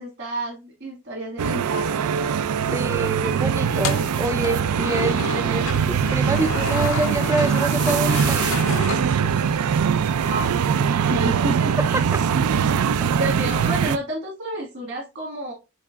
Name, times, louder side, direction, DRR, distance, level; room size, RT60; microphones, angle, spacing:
voice 1, 0.0-2.2 5.0-5.6 9.9-10.7 11.0-11.8 13.1-15.5, right 1 dB, 55° right, 2.0 m, -30 dB
sound 1, 1.4-14.0, right 7 dB, 85° right, 0.4 m, -22 dB
voice 2, 2.7-8.4 11.9-12.2, right 2 dB, 15° right, 0.3 m, -26 dB
sound 2, 3.7-9.7, left 5 dB, 65° left, 0.6 m, -31 dB
6.3 x 3.2 x 2.4 m
head